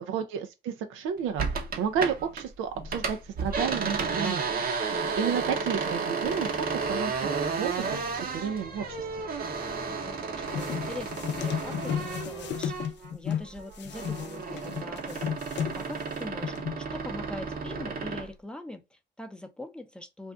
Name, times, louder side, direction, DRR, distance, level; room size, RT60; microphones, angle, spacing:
voice 1, 0.0-7.3 7.6-8.1 8.3-9.2, right 7 dB, 90° right, 0.5 m, -32 dB
sound 1, 1.4-2.4 2.7-13.1 13.4-18.3, right 5 dB, 50° right, 0.7 m, -32 dB
sound 2, 6.2-12.5, left 1 dB, 25° left, 1.1 m, -46 dB
voice 2, 9.9-20.3, left 1 dB, 5° left, 0.6 m, -42 dB
sound 3, 10.5-13.4 13.8-16.1 16.4-16.8, left 9 dB, 60° left, 0.5 m, -33 dB
2.6 x 2.4 x 3.3 m
cardioid pair, 90°, 20 cm